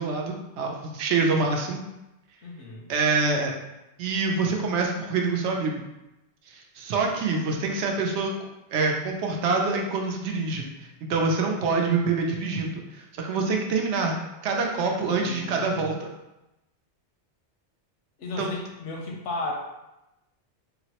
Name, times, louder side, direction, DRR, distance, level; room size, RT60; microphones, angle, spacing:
voice 1, 0.0-1.8 2.9-3.5 4.0-5.8 6.5-8.3 8.7-10.7 11.1-14.1 14.4-16.1 18.4-18.5, right 4 dB, 80° right, 1 dB, 0.9 m, -26 dB
voice 2, 2.4-2.9 14.9-15.8 18.2-19.5, left 2 dB, 85° left, 0 dB, 1.0 m, -35 dB
3.8 x 2.0 x 2.8 m, 0.94 s
omnidirectional pair, 1.2 m